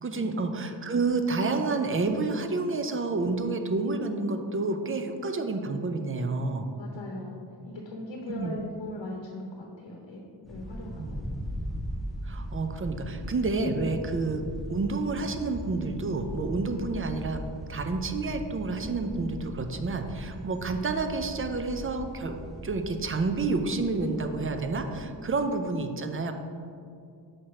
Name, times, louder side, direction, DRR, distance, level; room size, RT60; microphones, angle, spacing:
voice 1, 0.0-6.7 8.3-8.5 10.9-11.2 12.2-14.4 14.7-22.4 22.6-26.3, right 3 dB, 30° right, 6 dB, 0.4 m, -29 dB
voice 2, 6.8-10.2 10.5-11.2 25.0-25.4, left 2 dB, 75° left, 0 dB, 0.9 m, -40 dB
sound 1, 10.4-25.0, equal, ahead, 0.7 m, -39 dB
6.1 x 4.4 x 4.7 m, 2.4 s
wide cardioid pair, 150°, 44 cm